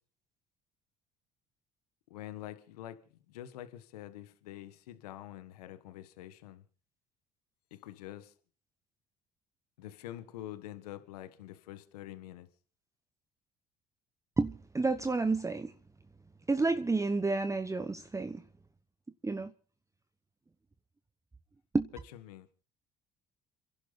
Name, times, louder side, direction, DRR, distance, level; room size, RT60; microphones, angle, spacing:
voice 1, 2.1-3.0 3.3-6.6 7.7-8.3 9.8-12.5 22.1-22.5, left 13 dB, 85° left, 1.6 m, -46 dB
voice 2, 14.4-15.7 16.5-18.4 19.2-19.5 21.7-21.9, right 3 dB, 15° right, 1.1 m, -30 dB
29.5 x 11.5 x 4.2 m
hypercardioid pair, 65°, 19 cm